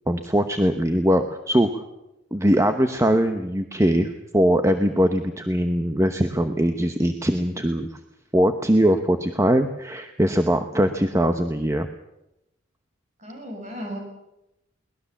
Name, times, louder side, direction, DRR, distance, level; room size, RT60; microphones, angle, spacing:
voice 1, 0.1-1.8 2.3-7.9 8.3-11.9, equal, 15° right, 7 dB, 1.0 m, -21 dB
voice 2, 13.2-14.0, equal, 40° right, 2 dB, 7.6 m, -35 dB
22.5 x 19.5 x 7.2 m, 0.90 s
head